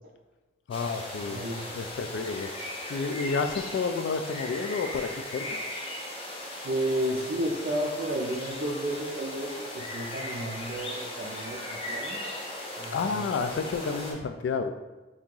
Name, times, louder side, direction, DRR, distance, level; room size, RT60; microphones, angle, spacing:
voice 1, 0.7-1.4 1.7-2.5 2.9-5.6 12.9-14.7, left 4 dB, 75° left, 8 dB, 0.3 m, -30 dB
sound 1, 0.7-14.1, left 1 dB, 30° left, 0.6 m, -38 dB
voice 2, 1.3-1.7 6.6-12.2 12.8-13.8, right 1 dB, 55° right, -3 dB, 0.4 m, -32 dB
2.8 x 2.7 x 3.7 m, 1.2 s
head